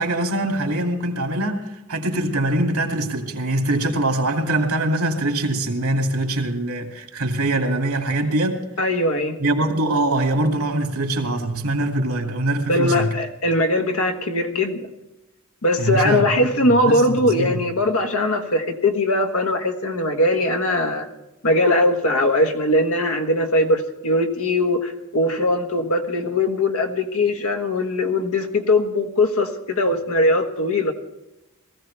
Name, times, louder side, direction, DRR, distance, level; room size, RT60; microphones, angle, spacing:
voice 1, 0.0-8.7 9.4-13.2 15.8-17.6, right 1 dB, 80° right, 2.5 m, -23 dB
voice 2, 8.8-9.4 12.7-14.8 15.6-21.1 21.4-30.9, left 1 dB, 75° left, 1.5 m, -20 dB
19.5 x 15.0 x 3.4 m
head